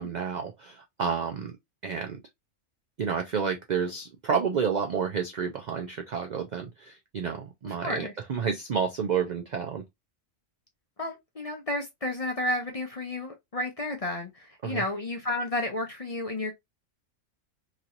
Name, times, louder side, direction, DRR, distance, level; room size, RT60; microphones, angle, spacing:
voice 1, 0.0-1.6 1.8-2.2 3.0-9.8 14.6-14.8, right 6 dB, 65° right, 0.4 m, -30 dB
voice 2, 7.6-8.1 11.0-16.5, left 1 dB, 40° left, 0.5 m, -32 dB
3.0 x 2.8 x 2.5 m
omnidirectional pair, 1.3 m